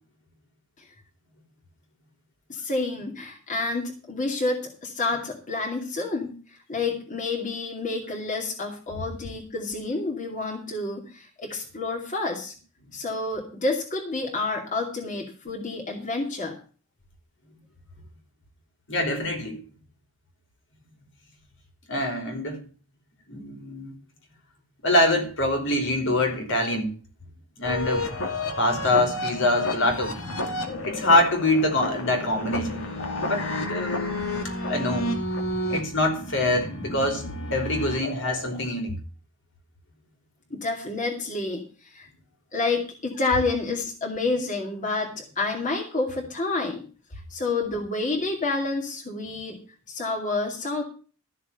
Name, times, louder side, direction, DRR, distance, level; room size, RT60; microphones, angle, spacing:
voice 1, 2.5-12.5 12.9-16.5 40.5-42.1 42.5-46.8 47.1-49.6 49.9-50.8, left 3 dB, 35° left, 2.6 m, -29 dB
voice 2, 18.9-19.6 21.9-22.6 23.3-23.9 24.8-26.9 27.6-28.1 28.6-30.2 30.8-32.8 33.2-34.2 34.4-35.1 35.7-37.2 37.5-39.0, left 1 dB, 60° left, 3.6 m, -24 dB
sound 1, 27.6-38.6, left 2 dB, 80° left, 2.4 m, -31 dB
13.5 x 6.7 x 6.9 m
head